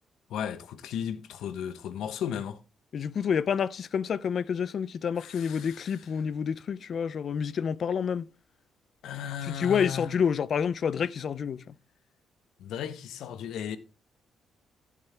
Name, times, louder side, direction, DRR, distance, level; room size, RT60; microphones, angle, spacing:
voice 1, 0.3-2.6 5.2-6.1 9.0-10.1 12.6-13.8, left 9 dB, 80° left, 1.0 m, -35 dB
voice 2, 2.9-8.3 9.6-11.6, left 7 dB, 55° left, 0.6 m, -28 dB
15.5 x 7.3 x 3.4 m
cardioid pair, 90°, 0 cm